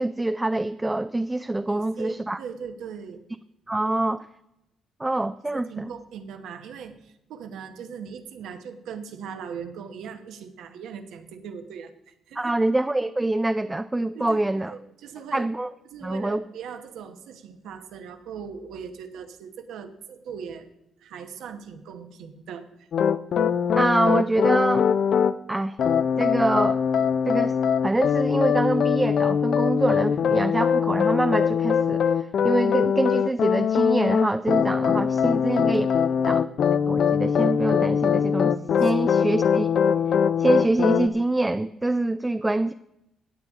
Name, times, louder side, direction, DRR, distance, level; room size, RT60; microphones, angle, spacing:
voice 1, 0.0-2.4 3.7-4.3 5.0-5.9 12.4-14.7 15.3-15.7 16.0-16.4 23.7-24.9 25.5-25.8 26.2-26.8 27.3-27.6 27.8-35.9 36.3-36.5 36.9-38.5 38.8-39.7 40.4-42.7, right 2 dB, 15° right, 10 dB, 0.4 m, -25 dB
voice 2, 1.7-3.2 5.5-12.5 14.1-15.5 15.8-20.7 21.0-22.9 35.3-36.3 38.8-39.0, right 6 dB, 80° right, 7 dB, 1.1 m, -40 dB
sound 1, 22.9-25.3 25.8-41.1, left 7 dB, 60° left, 0.5 m, -22 dB
17.0 x 8.6 x 3.7 m, 0.86 s
cardioid pair, 90°, 0 cm